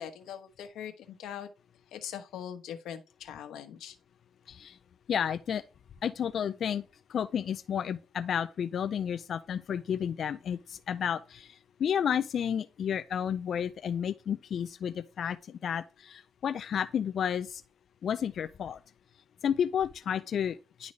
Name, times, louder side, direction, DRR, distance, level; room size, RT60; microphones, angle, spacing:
voice 1, 0.0-1.5 1.9-4.0, left 9 dB, 80° left, 1.1 m, -41 dB
voice 2, 5.1-5.6 6.0-17.6 18.0-18.8 19.4-20.9, left 8 dB, 60° left, 0.4 m, -31 dB
11.0 x 3.9 x 3.2 m
cardioid pair, 90°, 0 cm